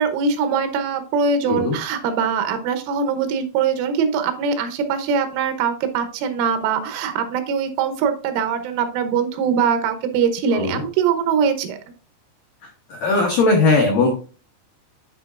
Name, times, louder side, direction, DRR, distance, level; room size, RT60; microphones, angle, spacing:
voice 1, 0.0-11.8, right 6 dB, 90° right, 8 dB, 3.4 m, -22 dB
voice 2, 12.9-14.1, left 3 dB, 85° left, 1 dB, 1.8 m, -18 dB
11.5 x 4.7 x 2.4 m, 0.37 s
omnidirectional pair, 5.4 m